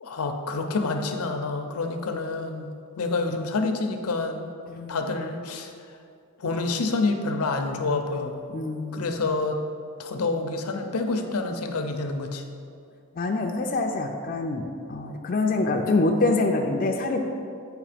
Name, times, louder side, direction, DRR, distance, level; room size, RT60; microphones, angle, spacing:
voice 1, 0.0-2.7 3.0-4.5 4.9-5.7 6.4-8.4 8.9-9.6 10.0-12.4, left 3 dB, 85° left, 5 dB, 0.6 m, -28 dB
voice 2, 8.5-9.1 13.2-17.2, left 2 dB, 40° left, 2 dB, 0.4 m, -25 dB
8.4 x 3.1 x 5.0 m, 2.4 s
head